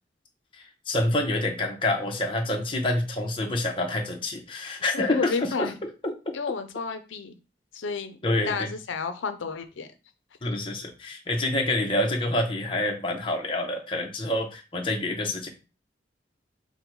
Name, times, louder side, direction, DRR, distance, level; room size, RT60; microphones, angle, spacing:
voice 1, 0.5-5.7 6.0-6.3 8.2-8.7 10.4-15.5, left 1 dB, 25° left, 1 dB, 0.8 m, -27 dB
voice 2, 4.9-5.8 6.3-7.4 7.7-8.2 8.5-9.9, left 5 dB, 90° left, 8 dB, 0.5 m, -31 dB
5.2 x 2.2 x 4.5 m, 0.31 s
head